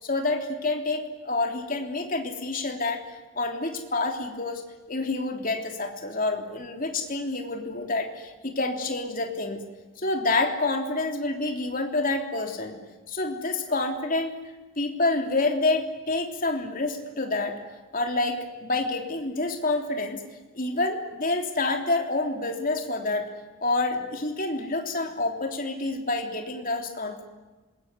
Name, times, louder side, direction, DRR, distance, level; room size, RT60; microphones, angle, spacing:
voice 1, 0.0-4.6 4.9-9.6 10.0-12.8 13.1-14.3 14.8-17.6 17.9-20.2 20.5-23.3 23.6-27.2, left 2 dB, 40° left, 3 dB, 3.3 m, -28 dB
26.5 x 21.5 x 9.6 m, 1.2 s
head